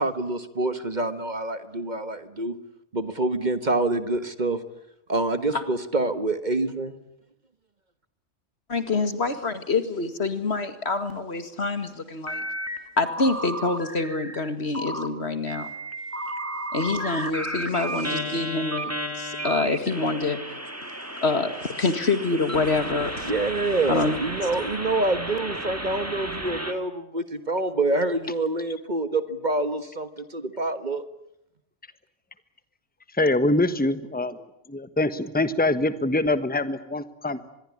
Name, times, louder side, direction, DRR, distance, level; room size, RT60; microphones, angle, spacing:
voice 1, 0.0-2.6 2.9-4.6 5.1-7.0 23.2-31.0, right 2 dB, 40° right, 11 dB, 1.6 m, -26 dB
voice 2, 8.7-12.4 13.0-15.7 16.7-20.4 21.2-23.3 23.9-24.2, left 3 dB, 60° left, 10 dB, 2.4 m, -26 dB
sound 1, 12.3-12.8 13.1-14.5 14.7-15.1 15.5-26.7, right 1 dB, 10° right, 2.4 m, -33 dB
voice 3, 33.1-34.4 34.7-37.4, left 2 dB, 10° left, 12 dB, 1.3 m, -24 dB
25.5 x 21.5 x 9.9 m, 0.78 s
omnidirectional pair, 1.2 m